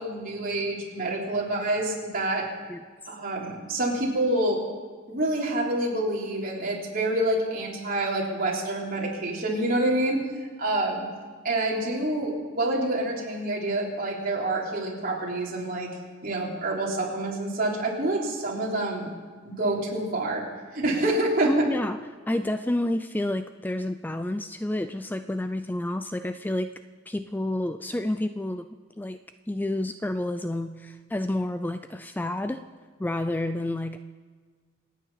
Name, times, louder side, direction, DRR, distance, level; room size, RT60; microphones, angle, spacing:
voice 1, 0.0-2.5 3.1-4.6 5.1-10.2 10.6-11.1 11.4-15.9 16.2-19.1 19.4-20.4 20.7-21.7, right 1 dB, 45° right, -3 dB, 3.7 m, -27 dB
voice 2, 21.5-22.0 22.3-26.7 27.1-28.7 29.0-29.2 29.5-32.6 33.0-34.0, left 1 dB, 10° left, 9 dB, 0.4 m, -29 dB
27.0 x 9.4 x 5.7 m, 1.5 s
head